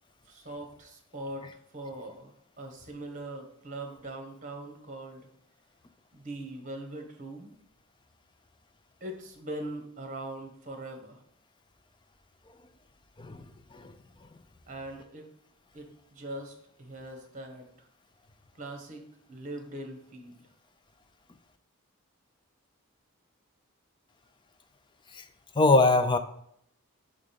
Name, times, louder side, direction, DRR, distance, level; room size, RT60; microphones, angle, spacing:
voice 1, 0.3-1.5 1.7-2.3 2.6-5.3 6.1-7.5 9.0-11.2 14.7-15.3 15.7-17.6 18.6-19.0 19.3-20.4, right 1 dB, 35° right, 4 dB, 1.3 m, -41 dB
voice 2, 25.6-26.2, left 2 dB, 20° left, 9 dB, 0.4 m, -22 dB
5.0 x 3.7 x 5.8 m, 0.69 s
head